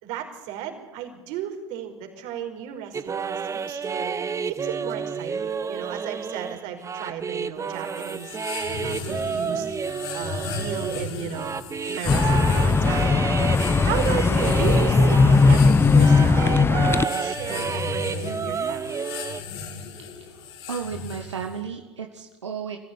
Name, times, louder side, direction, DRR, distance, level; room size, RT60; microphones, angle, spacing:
voice 1, 0.0-4.2 4.5-8.4 8.8-9.7 10.1-11.5 11.9-13.2 13.8-19.0, right 9 dB, 55° right, 4 dB, 5.0 m, -34 dB
sound 1, 2.9-15.7 16.0-19.4, right 6 dB, 20° right, 1.0 m, -30 dB
sound 2, 7.7-21.6, left 5 dB, 60° left, 3.9 m, -36 dB
sound 3, 12.0-17.0, left 4 dB, 15° left, 0.9 m, -18 dB
voice 2, 20.2-22.8, right 6 dB, 85° right, 3 dB, 1.7 m, -34 dB
24.5 x 15.5 x 9.6 m, 1.2 s
hypercardioid pair, 85°, 15 cm